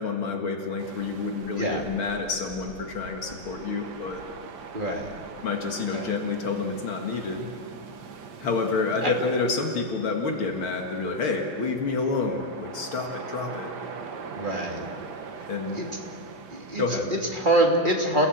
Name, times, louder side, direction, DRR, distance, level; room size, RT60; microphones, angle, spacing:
voice 1, 0.0-4.3 5.4-7.5 8.4-13.7 15.5-15.8 16.8-17.1, left 4 dB, 70° left, 3 dB, 2.7 m, -28 dB
sound 1, 0.8-17.6, right 5 dB, 55° right, 1.7 m, -42 dB
voice 2, 4.7-5.1 5.9-6.2 9.0-9.1 14.3-14.9 15.4-15.9 16.5-18.3, right 1 dB, 20° right, 0 dB, 2.9 m, -26 dB
28.5 x 17.5 x 7.9 m, 2.1 s
omnidirectional pair, 2.4 m